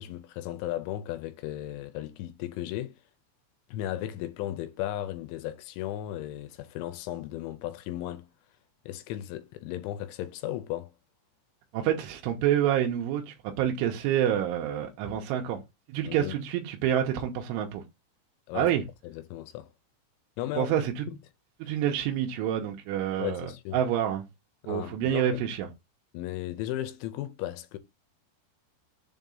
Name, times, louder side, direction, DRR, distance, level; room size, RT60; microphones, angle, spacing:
voice 1, 0.0-3.0 3.7-8.3 8.9-10.9 16.0-16.3 18.5-18.7 19.0-19.7 20.4-20.7 21.1-21.2 21.6-21.7 23.2-23.8 24.6-25.4 26.1-27.8, left 13 dB, 85° left, 2.9 m, -35 dB
voice 2, 11.7-15.6 15.9-17.8 18.5-18.8 20.6-21.0 21.6-24.2 24.7-25.7, right 10 dB, 90° right, 3.3 m, -28 dB
7.3 x 2.7 x 5.3 m
omnidirectional pair, 5.5 m